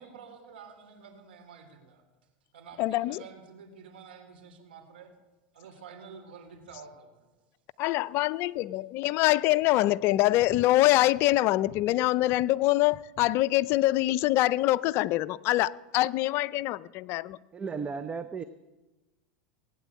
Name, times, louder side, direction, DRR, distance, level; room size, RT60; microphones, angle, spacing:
voice 1, 0.0-2.0 2.5-5.1 5.5-7.2, right 6 dB, 90° right, 3 dB, 3.4 m, -49 dB
voice 2, 2.8-3.2 7.8-17.4, left 16 dB, 50° left, 17 dB, 0.5 m, -24 dB
voice 3, 17.5-18.4, right 5 dB, 20° right, 11 dB, 0.7 m, -34 dB
18.0 x 9.2 x 8.2 m, 1.1 s
supercardioid pair, 120°, 5 cm